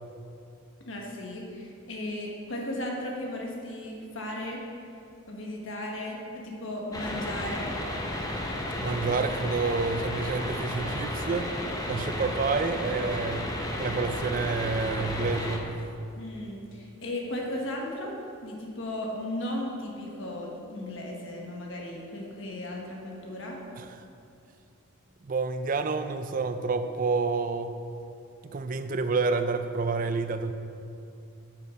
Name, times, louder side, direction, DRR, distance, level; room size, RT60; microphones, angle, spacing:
voice 1, 0.9-4.6 5.3-7.8 16.2-23.6, left 1 dB, 60° left, -1 dB, 1.4 m, -36 dB
sound 1, 6.9-15.6, left 1 dB, 15° left, 0.7 m, -33 dB
voice 2, 8.8-11.5 11.9-13.5 13.8-15.7 23.8-23.9 25.2-27.7 28.4-30.5, right 4 dB, 40° right, 9 dB, 0.4 m, -29 dB
8.2 x 6.9 x 5.0 m, 2.6 s
head